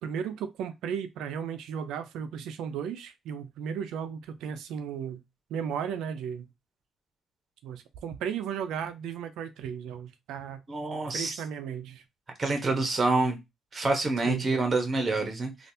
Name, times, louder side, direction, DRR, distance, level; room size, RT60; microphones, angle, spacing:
voice 1, 0.0-5.2 5.5-6.5 7.6-10.6 11.1-12.0 14.2-14.5, right 8 dB, 85° right, 0.4 m, -35 dB
voice 2, 10.7-11.4 12.4-13.4 13.7-15.7, right 3 dB, 35° right, 1.1 m, -27 dB
3.3 x 2.5 x 2.7 m
cardioid pair, 90°, 0 cm